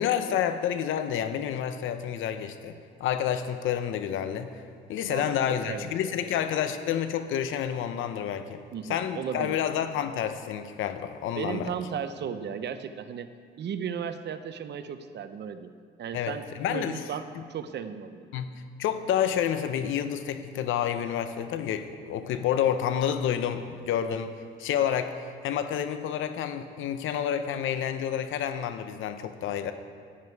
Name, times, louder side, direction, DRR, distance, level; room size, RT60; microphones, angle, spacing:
voice 1, 0.0-4.5 4.9-8.6 8.9-11.7 16.1-16.9 17.4-17.5 18.3-29.7, left 9 dB, 85° left, 9 dB, 0.8 m, -29 dB
voice 2, 5.1-6.5 8.7-9.6 11.4-13.3 13.6-15.7 16.0-18.3, right 7 dB, 60° right, 10 dB, 0.8 m, -35 dB
13.0 x 9.6 x 4.7 m, 2.1 s
cardioid pair, 90°, 20 cm